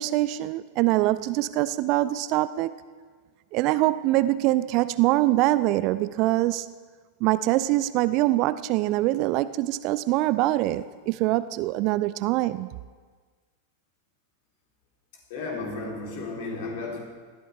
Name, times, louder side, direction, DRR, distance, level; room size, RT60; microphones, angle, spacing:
voice 1, 0.0-2.7 3.5-6.7 7.2-12.7, right 16 dB, 40° right, 16 dB, 0.4 m, -24 dB
voice 2, 15.3-17.0, left 3 dB, 50° left, -1 dB, 3.5 m, -33 dB
19.5 x 13.5 x 3.5 m, 1.5 s
figure-of-eight pair, 90°, 0 cm